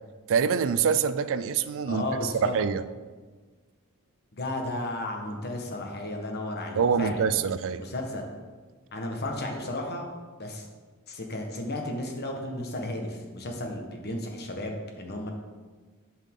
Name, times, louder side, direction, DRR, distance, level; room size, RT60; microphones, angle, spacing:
voice 1, 0.3-2.8 6.7-7.8, right 6 dB, 60° right, 13 dB, 0.4 m, -25 dB
voice 2, 1.9-2.5 4.3-7.3 7.7-8.3 8.9-10.1 10.4-10.7 11.1-15.3, left 1 dB, 50° left, 2 dB, 1.3 m, -33 dB
11.0 x 5.5 x 3.7 m, 1.4 s
head